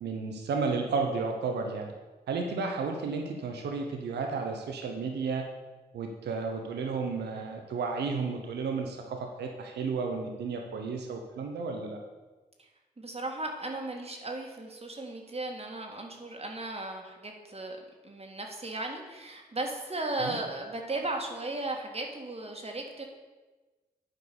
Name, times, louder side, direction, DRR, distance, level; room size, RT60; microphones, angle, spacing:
voice 1, 0.0-1.9 2.3-5.5 5.9-12.0 20.2-20.4, right 4 dB, 80° right, 3 dB, 0.9 m, -32 dB
voice 2, 13.0-17.8 18.0-23.0, right 2 dB, 35° right, 2 dB, 1.9 m, -36 dB
8.9 x 4.7 x 6.8 m, 1.2 s
supercardioid pair, 40°, 17 cm